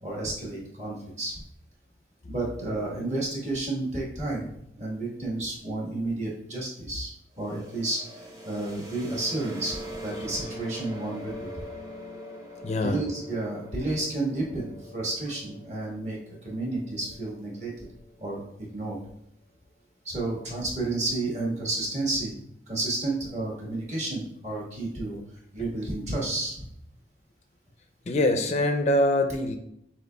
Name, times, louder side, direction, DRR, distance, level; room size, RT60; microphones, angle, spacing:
voice 1, 0.0-1.3 2.3-11.5 12.8-16.2 16.4-17.7 18.2-18.4 18.7-19.0 20.0-22.3 22.7-25.2 25.5-26.7, right 2 dB, 40° right, -3 dB, 1.4 m, -31 dB
sound 1, 7.3-19.0, equal, 20° right, 0.7 m, -43 dB
voice 2, 12.6-13.0 28.1-29.6, left 1 dB, 40° left, 5 dB, 0.4 m, -24 dB
7.7 x 3.0 x 2.2 m, 0.74 s
head